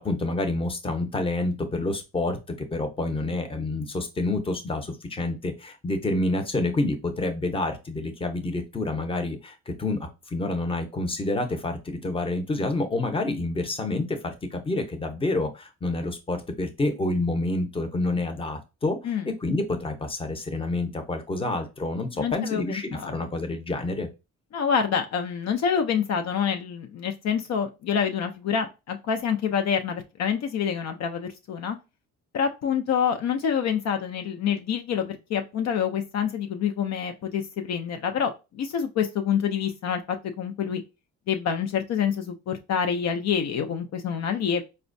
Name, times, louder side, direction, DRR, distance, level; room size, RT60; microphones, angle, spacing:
voice 1, 0.0-19.0 19.3-24.1, left 2 dB, 20° left, 6 dB, 0.7 m, -28 dB
voice 2, 22.2-23.3 24.5-31.8 32.3-40.8 41.3-44.6, left 7 dB, 60° left, 6 dB, 0.5 m, -27 dB
4.2 x 2.2 x 2.5 m, 0.27 s
cardioid pair, 90°, 30 cm